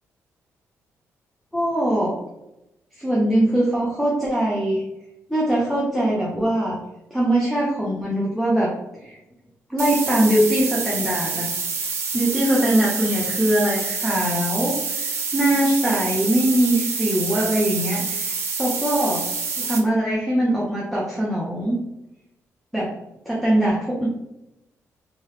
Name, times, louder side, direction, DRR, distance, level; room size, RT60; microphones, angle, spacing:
voice 1, 1.5-2.2 2.9-4.8 5.3-6.8 7.1-8.7 9.0-9.2 9.7-11.5 12.1-19.2 19.6-21.8 22.7-22.9 23.3-24.1, right 1 dB, ahead, -5 dB, 0.6 m, -22 dB
sound 1, 9.8-19.8, right 5 dB, 55° right, 0.7 m, -27 dB
3.0 x 2.8 x 3.1 m, 0.91 s
cardioid pair, 150°, 5 cm